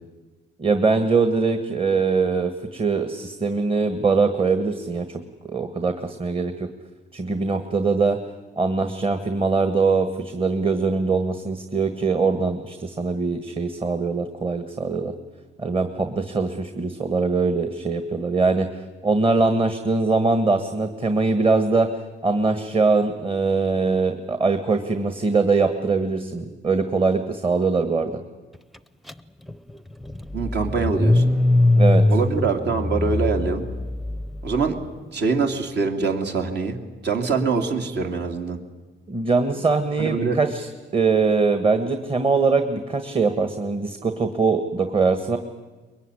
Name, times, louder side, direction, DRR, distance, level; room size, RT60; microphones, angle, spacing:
voice 1, 0.6-5.1 5.4-6.7 7.1-8.2 8.6-15.1 15.6-21.9 22.2-28.2 31.8-32.0 39.1-40.7 40.9-45.4, right 4 dB, 30° right, 8 dB, 1.5 m, -22 dB
Car / Engine starting, 29.1-29.2 29.5-34.7, left 2 dB, ahead, 0.7 m, -21 dB
voice 2, 30.3-31.2 32.1-33.6 34.4-34.7 35.1-36.7 37.0-38.6 40.0-40.4, right 4 dB, 60° right, 4 dB, 2.9 m, -24 dB
23.0 x 22.0 x 9.9 m, 1.3 s
cardioid pair, 115°, 19 cm